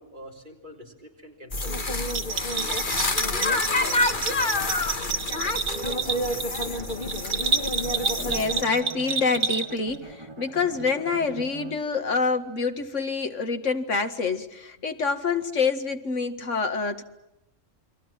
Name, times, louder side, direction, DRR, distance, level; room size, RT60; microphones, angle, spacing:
voice 1, 0.0-2.0 2.5-5.2 5.7-6.4, equal, 40° right, 1 dB, 4.3 m, -44 dB
sound 1, 1.5-8.6, left 2 dB, 40° left, 1.8 m, -27 dB
Bell, 2.1-10.0, right 5 dB, 90° right, 2.0 m, -29 dB
Bowed string instrument, 7.7-12.1, right 2 dB, 20° right, 1.8 m, -43 dB
voice 2, 8.2-17.0, left 4 dB, 70° left, 7 dB, 2.2 m, -27 dB
29.5 x 23.0 x 7.5 m, 0.90 s
omnidirectional pair, 1.3 m